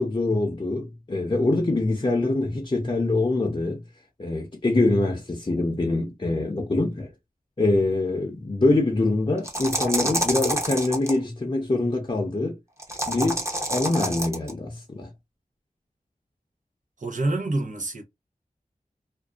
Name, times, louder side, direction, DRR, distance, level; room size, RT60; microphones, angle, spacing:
voice 1, 0.0-3.8 4.2-7.1 7.6-12.6 13.1-15.1, left 2 dB, 35° left, 0.7 m, -24 dB
sound 1, 9.4-11.2 12.8-14.5, right 1 dB, 20° right, 0.8 m, -27 dB
voice 2, 17.0-18.0, right 2 dB, 60° right, 0.7 m, -27 dB
2.5 x 2.3 x 2.3 m
wide cardioid pair, 50°, 15 cm